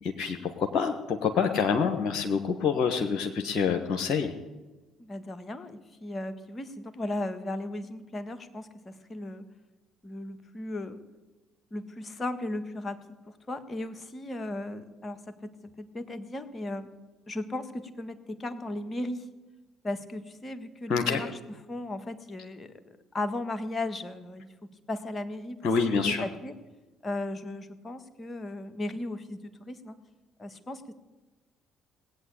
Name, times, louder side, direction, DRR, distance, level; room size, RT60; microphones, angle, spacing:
voice 1, 0.0-4.3 20.9-21.2 25.6-26.2, left 6 dB, 50° left, 5 dB, 1.3 m, -27 dB
voice 2, 5.0-9.4 10.0-11.0 11.7-15.5 15.8-16.9 17.3-19.2 19.8-21.3 21.7-24.5 24.9-26.5 27.0-30.0 30.4-30.9, left 2 dB, 30° left, 9 dB, 1.7 m, -36 dB
19.0 x 8.6 x 8.4 m, 1.2 s
hypercardioid pair, 50°, 0 cm